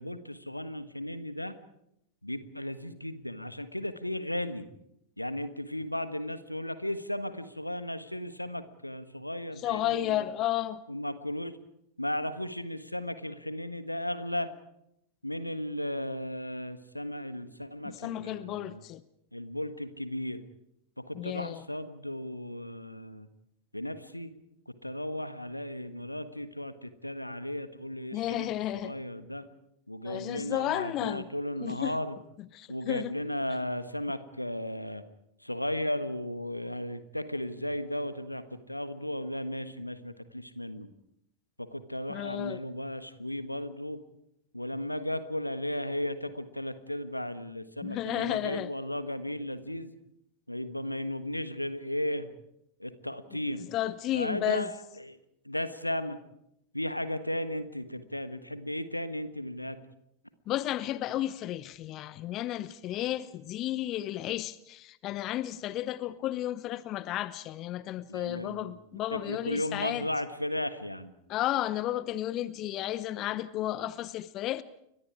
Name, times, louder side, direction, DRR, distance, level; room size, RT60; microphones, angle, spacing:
voice 1, 0.0-1.5 2.2-4.7 5.2-10.2 10.9-11.6 12.0-14.5 15.2-18.8 19.3-20.4 21.0-23.3 23.7-24.3 24.7-28.5 28.7-29.5 29.9-32.2 32.7-35.0 35.4-40.9 41.6-44.0 44.5-49.9 50.5-52.3 52.8-53.7 54.1-55.2 55.4-56.2 56.7-59.8 68.1-68.8 69.1-71.1, left 1 dB, 85° left, 1.5 m, -35 dB
voice 2, 9.6-10.8 17.8-19.0 21.1-21.6 28.1-28.9 30.0-31.3 31.6-32.0 32.5-33.1 42.1-42.6 47.8-48.7 53.7-54.7 60.5-70.1 71.3-74.6, left 13 dB, 35° left, 0.9 m, -33 dB
30.0 x 23.5 x 4.9 m
figure-of-eight pair, 90°, 0 cm